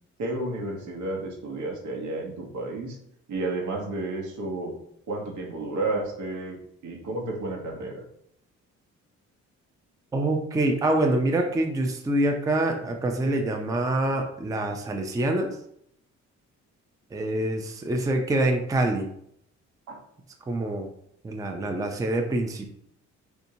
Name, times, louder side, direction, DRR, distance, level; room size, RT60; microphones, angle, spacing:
voice 1, 0.2-3.0 3.3-4.7 5.1-6.6 6.8-8.0 19.9-20.0, right 2 dB, 75° right, 0 dB, 1.0 m, -31 dB
voice 2, 10.1-15.5 17.1-19.1 20.5-20.9 21.2-22.7, right 1 dB, 10° right, 3 dB, 0.4 m, -25 dB
3.4 x 2.7 x 2.7 m, 0.70 s
cardioid pair, 90°, 30 cm